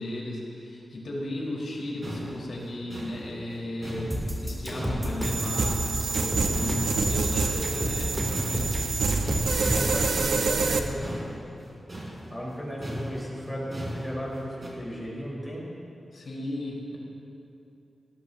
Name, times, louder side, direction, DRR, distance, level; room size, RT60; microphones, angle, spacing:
voice 1, 0.0-9.0 16.1-17.0, left 1 dB, 65° left, -4 dB, 4.0 m, -35 dB
sound 1, 1.7-6.3 6.5-8.1 8.3-14.7, equal, 30° right, 3.7 m, -38 dB
sound 2, 4.1-10.0, equal, 10° right, 2.7 m, -30 dB
sound 3, 5.2-10.8, right 4 dB, 90° right, 1.0 m, -27 dB
voice 2, 9.6-11.2 12.3-15.6, equal, 5° left, -5 dB, 3.9 m, -35 dB
19.5 x 19.0 x 2.7 m, 2.8 s
wide cardioid pair, 160°, 0 cm